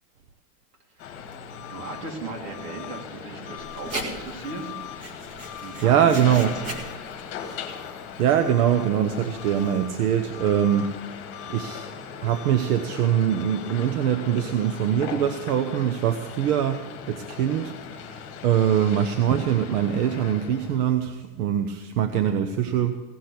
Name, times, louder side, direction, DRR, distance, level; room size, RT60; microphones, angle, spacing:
voice 1, 0.9-1.2 1.7-4.7 5.6-6.7, right 3 dB, 90° right, 0 dB, 3.3 m, -37 dB
sound 1, 1.0-20.8, left 7 dB, 30° left, 1.4 m, -39 dB
Writing, 3.6-9.9, right 2 dB, 30° right, 1.7 m, -40 dB
voice 2, 5.8-6.5 8.2-10.9 11.5-11.9 12.2-23.0, right 9 dB, 70° right, 8 dB, 1.0 m, -23 dB
17.0 x 6.1 x 8.3 m, 1.2 s
supercardioid pair, 175°, 46 cm